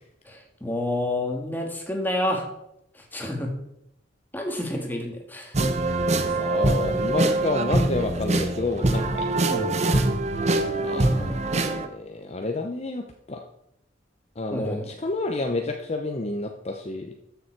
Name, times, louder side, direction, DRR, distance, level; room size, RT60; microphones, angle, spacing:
voice 1, 0.3-2.5 3.1-3.5 4.3-5.6 9.5-9.8 11.1-11.4 14.5-14.9, left 1 dB, 10° left, 2 dB, 1.8 m, -29 dB
sound 1, 5.5-11.9, right 2 dB, 35° right, 0.8 m, -24 dB
voice 2, 6.2-9.3 10.8-13.4 14.4-17.1, left 2 dB, 35° left, 4 dB, 0.8 m, -30 dB
13.0 x 7.0 x 4.6 m, 0.79 s
head